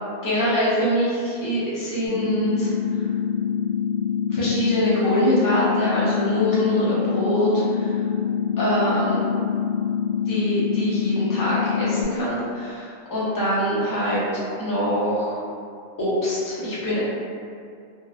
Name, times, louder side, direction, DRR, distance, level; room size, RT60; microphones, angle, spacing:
voice 1, 0.2-2.7 4.3-8.0 8.6-9.2 10.3-15.4 16.0-17.0, equal, 25° left, -9 dB, 0.5 m, -24 dB
sound 1, 2.0-12.0, left 8 dB, 50° right, 1.1 m, -25 dB
2.7 x 2.2 x 2.3 m, 2.4 s
omnidirectional pair, 1.1 m